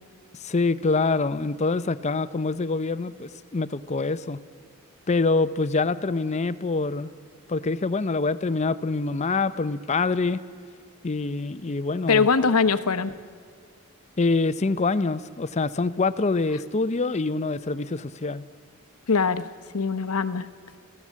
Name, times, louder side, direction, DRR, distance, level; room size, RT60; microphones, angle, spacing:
voice 1, 0.4-4.4 5.1-7.1 7.5-10.4 11.0-12.3 14.2-18.4, left 3 dB, 30° left, 14 dB, 0.5 m, -25 dB
voice 2, 12.1-13.1 19.1-19.4 19.7-20.5, left 5 dB, 80° left, 12 dB, 0.9 m, -22 dB
30.0 x 16.0 x 7.4 m, 2.2 s
head